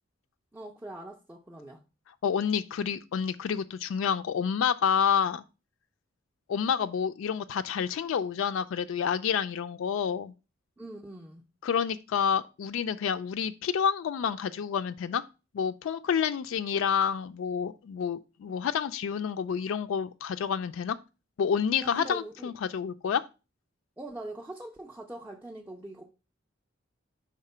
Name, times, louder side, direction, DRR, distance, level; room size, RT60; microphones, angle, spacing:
voice 1, 0.5-1.8 10.8-11.4 21.8-22.5 24.0-26.1, right 1 dB, 10° right, 0.4 m, -42 dB
voice 2, 2.2-5.4 6.5-10.3 11.6-15.2 15.5-21.0 21.4-23.2, left 7 dB, 80° left, 0.3 m, -29 dB
4.9 x 3.5 x 5.4 m
head